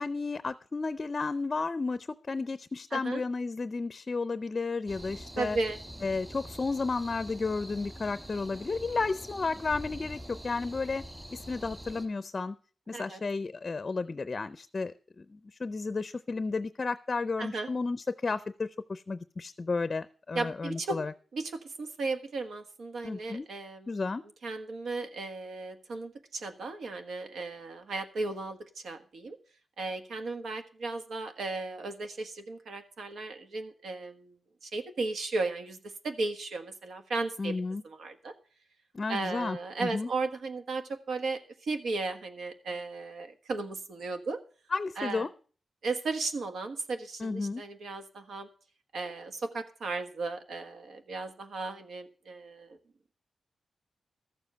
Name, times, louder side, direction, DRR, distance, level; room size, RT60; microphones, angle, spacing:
voice 1, 0.0-5.6 6.0-11.0 11.3-12.6 12.9-21.1 23.0-23.5 23.9-24.2 37.4-37.8 38.9-40.1 44.7-45.3 47.2-47.6, left 4 dB, 35° left, 14 dB, 0.5 m, -32 dB
voice 2, 2.9-3.2 5.4-5.8 12.9-13.2 17.4-17.7 20.3-21.0 21.3-24.0 24.4-29.4 29.8-34.3 34.6-35.8 36.0-37.5 37.8-38.3 39.1-44.4 45.0-45.3 45.8-48.5 48.9-52.8, right 3 dB, 90° right, 7 dB, 1.5 m, -35 dB
sound 1, 4.9-12.1, equal, 15° right, 2.0 m, -45 dB
13.5 x 7.3 x 6.7 m, 0.40 s
wide cardioid pair, 140°, 0 cm